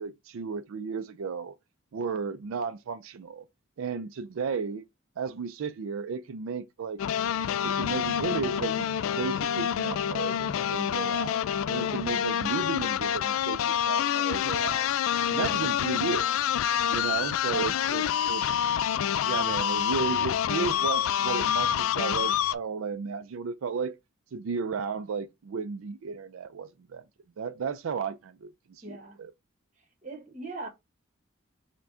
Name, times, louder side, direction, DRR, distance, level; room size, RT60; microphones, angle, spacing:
voice 1, 0.0-1.5 1.9-3.5 3.8-4.8 5.2-7.0 7.6-8.9 9.1-11.4 11.7-14.9 15.3-16.3 16.9-18.7 19.2-24.0 24.3-27.0 27.4-29.3, right 5 dB, 85° right, 0.4 m, -34 dB
sound 1, 7.0-22.6, left 9 dB, 80° left, 0.3 m, -27 dB
voice 2, 28.8-29.2 30.0-30.7, right 3 dB, 35° right, 1.1 m, -40 dB
5.9 x 2.2 x 3.7 m
head